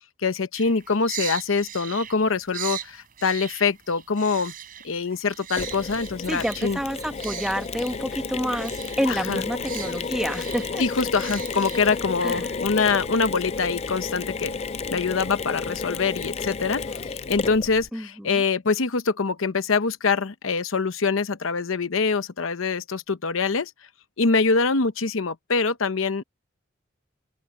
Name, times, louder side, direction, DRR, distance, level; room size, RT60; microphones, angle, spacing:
voice 1, 0.2-4.5 4.8-6.8 9.1-9.4 10.8-14.6 14.9-23.7 24.2-26.2, left 4 dB, 80° left, 0.8 m, -24 dB
sound 1, 0.5-12.2, right 10 dB, 45° right, 5.9 m, -39 dB
Mechanisms, 5.6-17.9, left 4 dB, 30° left, 0.4 m, -32 dB
voice 2, 6.3-10.9 12.2-12.5 17.9-18.4, equal, ahead, 1.2 m, -29 dB
open air
head